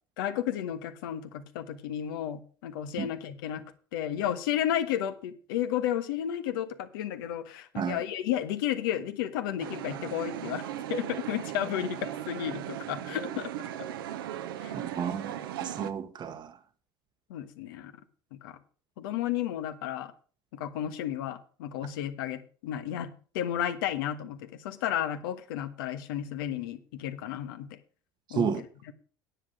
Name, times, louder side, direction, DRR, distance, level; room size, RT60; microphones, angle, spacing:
voice 1, 0.2-3.6 3.9-10.6 10.9-13.5 14.6-14.7 17.3-17.9 18.4-18.6 19.0-20.1 20.5-27.8 28.3-28.5 28.8-28.9, left 11 dB, 75° left, 1.3 m, -32 dB
sound 1, 9.6-15.9, right 11 dB, 80° right, 0.9 m, -37 dB
voice 2, 14.7-15.3 15.6-16.6 28.3-28.6, right 7 dB, 40° right, 1.1 m, -31 dB
9.9 x 8.0 x 6.3 m
hypercardioid pair, 80°, 12 cm